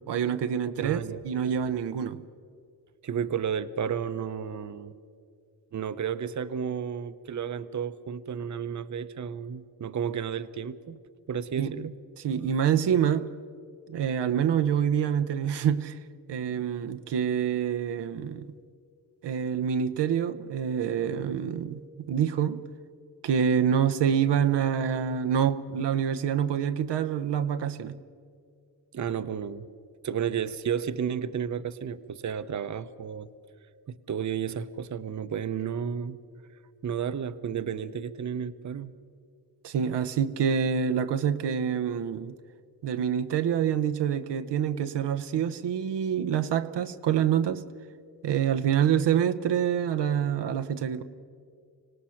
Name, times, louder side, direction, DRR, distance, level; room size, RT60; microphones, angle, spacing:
voice 1, 0.1-2.2 11.6-11.7 12.2-13.3 13.9-16.0 16.3-18.5 19.2-22.6 23.2-28.0 39.6-42.4 42.8-47.6 48.2-51.0, right 8 dB, 80° right, 9 dB, 0.8 m, -26 dB
voice 2, 0.8-1.2 3.0-4.9 5.7-11.0 11.3-11.9 28.9-29.7 30.0-33.3 33.9-36.2 36.8-38.9, right 7 dB, 45° right, 13 dB, 0.8 m, -32 dB
25.5 x 18.0 x 5.8 m, 2.2 s
cardioid pair, 80°, 41 cm